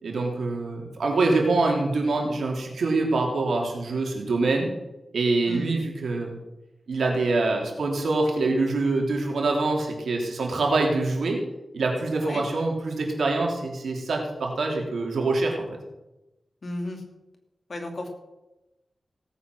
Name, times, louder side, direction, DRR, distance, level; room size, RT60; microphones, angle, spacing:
voice 1, 0.0-4.7 5.1-6.3 6.9-11.4 11.7-15.7, right 3 dB, 85° right, 1 dB, 3.2 m, -25 dB
voice 2, 16.6-17.0 17.7-18.1, left 1 dB, 55° left, 3 dB, 2.7 m, -33 dB
17.5 x 8.6 x 6.3 m, 0.99 s
wide cardioid pair, 75°, 0 cm